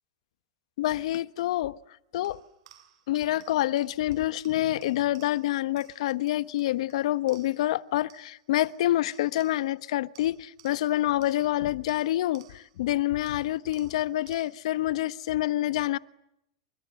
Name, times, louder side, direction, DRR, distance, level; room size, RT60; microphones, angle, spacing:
voice 1, 0.8-1.8 2.1-2.4 3.1-16.0, left 14 dB, 65° left, 1.1 m, -27 dB
sound 1, 2.2-7.8 8.1-9.8 10.1-12.8 13.3-14.7, right 12 dB, 65° right, 6.1 m, -59 dB
29.5 x 24.5 x 7.7 m
supercardioid pair, 155°, 3 cm